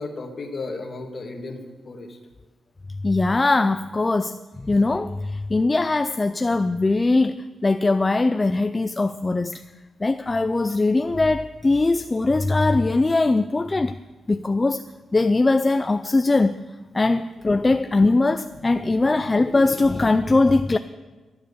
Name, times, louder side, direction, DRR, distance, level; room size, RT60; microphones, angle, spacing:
voice 1, 0.0-1.6 1.8-2.1 18.5-18.7 19.2-19.3, left 3 dB, 40° left, 3 dB, 1.7 m, -34 dB
voice 2, 3.0-4.4 4.7-7.3 7.6-9.5 10.0-13.9 14.3-14.8 15.1-16.6 16.9-20.8, left 3 dB, 20° left, 10 dB, 0.3 m, -20 dB
12.0 x 10.0 x 6.7 m, 1.3 s
wide cardioid pair, 150°, 0 cm